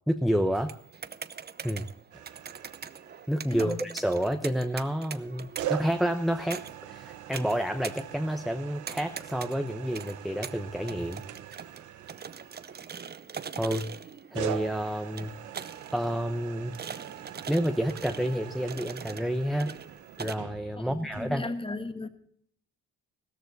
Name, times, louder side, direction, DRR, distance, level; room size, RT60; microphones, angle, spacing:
voice 1, 0.1-0.7 1.6-1.9 3.3-6.6 6.9-11.2 13.6-13.9 14.3-15.3 15.9-16.8 17.5-19.7 20.2-21.5, equal, ahead, 0.8 m, -29 dB
Street Fighter Arcade Buttons, 0.6-20.3, right 7 dB, 35° right, 0.8 m, -43 dB
sound 1, 2.1-3.6 5.6-13.4 14.3-21.4, right 12 dB, 75° right, 1.0 m, -42 dB
voice 2, 3.5-3.8 20.8-22.1, left 2 dB, 15° left, 1.6 m, -36 dB
15.5 x 14.0 x 4.0 m
cardioid pair, 90°, 30 cm